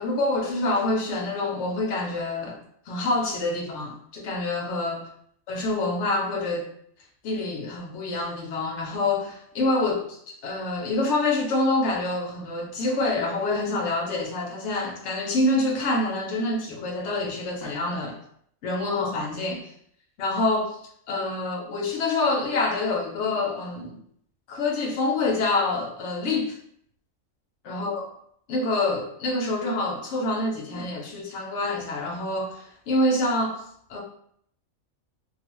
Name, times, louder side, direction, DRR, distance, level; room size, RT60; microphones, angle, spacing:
voice 1, 0.0-2.6 2.9-5.0 5.5-6.7 7.2-18.2 18.6-19.7 20.2-20.8 21.1-24.0 24.5-26.6 27.7-28.1 28.5-33.6 33.9-34.0, left 2 dB, 65° left, 1 dB, 0.8 m, -26 dB
2.4 x 2.3 x 2.9 m, 0.66 s
omnidirectional pair, 1.4 m